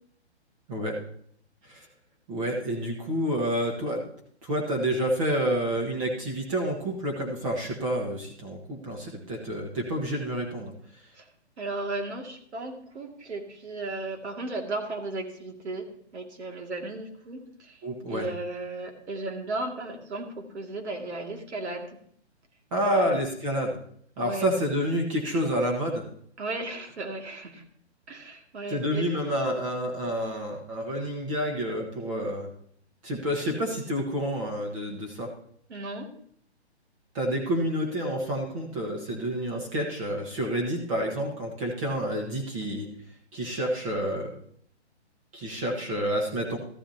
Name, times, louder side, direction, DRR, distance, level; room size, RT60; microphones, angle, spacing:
voice 1, 2.3-4.0 4.4-10.7 17.8-18.3 22.7-23.8 24.2-26.0 28.7-32.5 33.0-35.3 37.1-42.9 43.3-44.4 45.3-46.6, equal, 30° right, 0 dB, 1.5 m, -29 dB
voice 2, 11.6-15.9 16.1-17.8 18.1-22.0 22.9-23.2 24.2-24.4 26.4-27.6 28.1-29.1 35.7-36.1, right 2 dB, 75° right, 3 dB, 2.4 m, -35 dB
13.5 x 11.5 x 2.8 m, 0.62 s
hypercardioid pair, 165°, 34 cm